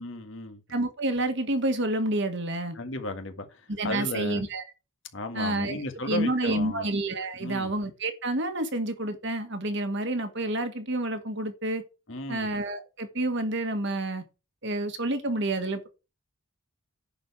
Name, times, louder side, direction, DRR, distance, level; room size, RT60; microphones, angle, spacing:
voice 1, 0.0-0.6 2.8-4.4 5.1-6.9 7.4-7.7 12.1-12.5, left 1 dB, 60° left, 1.8 m, -34 dB
voice 2, 0.7-2.8 3.7-4.6 5.3-5.8 6.1-11.8 12.3-14.2 14.6-15.9, right 1 dB, 55° right, 1.6 m, -29 dB
10.5 x 4.8 x 6.0 m
head